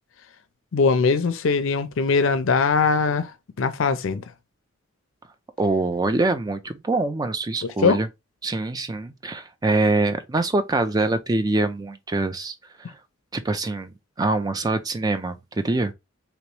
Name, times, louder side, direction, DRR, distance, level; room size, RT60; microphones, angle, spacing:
voice 1, 0.7-3.3 3.6-4.2 7.6-8.0, left 4 dB, 65° left, 0.5 m, -21 dB
voice 2, 5.6-8.1 8.4-12.9 13.3-15.9, right 2 dB, 20° right, 0.3 m, -24 dB
3.0 x 2.9 x 3.1 m
head